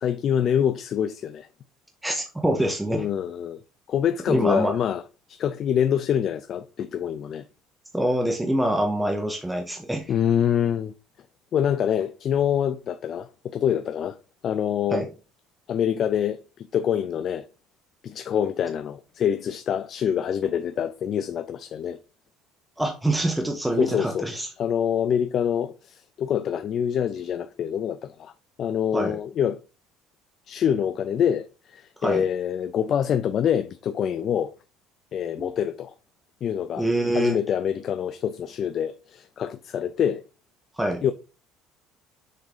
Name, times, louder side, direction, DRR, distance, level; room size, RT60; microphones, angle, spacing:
voice 1, 0.0-1.5 2.9-3.6 3.9-5.0 5.3-7.4 10.1-10.9 11.5-14.2 14.4-15.1 15.7-17.4 18.0-22.0 23.8-24.3 24.6-28.3 28.6-29.6 30.5-34.5 35.1-35.9 36.4-36.9 37.1-40.2 41.0-41.1, left 9 dB, 40° left, 0.4 m, -25 dB
voice 2, 2.0-3.1 4.3-4.7 7.9-10.1 14.9-15.1 22.8-24.5 28.9-29.2 32.0-32.2 35.4-35.5 36.8-37.4 40.8-41.0, right 1 dB, 5° right, 0.8 m, -25 dB
6.6 x 3.6 x 4.9 m
cardioid pair, 160°, 0 cm